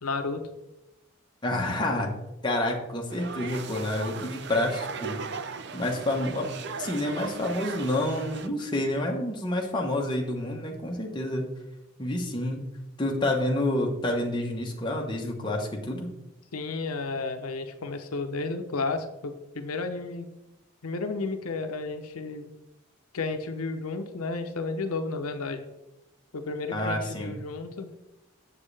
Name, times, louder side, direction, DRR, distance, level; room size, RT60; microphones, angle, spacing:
voice 1, 0.0-0.4 16.5-20.3 20.8-22.5 23.1-25.6 26.3-27.9, left 3 dB, 85° left, 7 dB, 0.7 m, -32 dB
voice 2, 1.4-2.1 2.4-5.2 5.7-6.5 6.8-11.5 12.0-12.7 13.0-16.1 26.7-27.4, left 1 dB, 20° left, 0 dB, 1.1 m, -28 dB
sound 1, 3.1-8.5, right 5 dB, 50° right, 0.5 m, -38 dB
7.4 x 7.4 x 3.3 m, 0.92 s
head